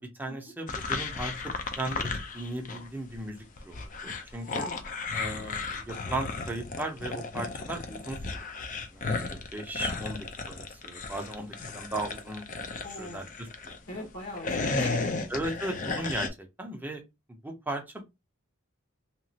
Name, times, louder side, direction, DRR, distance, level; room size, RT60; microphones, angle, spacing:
voice 1, 0.0-4.6 5.1-14.1 15.3-17.0 17.4-18.0, right 1 dB, 10° right, 0.6 m, -37 dB
sound 1, 0.7-2.9 3.1-13.8 14.2-16.3, left 4 dB, 40° left, 0.4 m, -34 dB
voice 2, 12.8-13.3 13.9-15.1, equal, 75° left, 1.3 m, -40 dB
2.9 x 2.4 x 2.7 m
head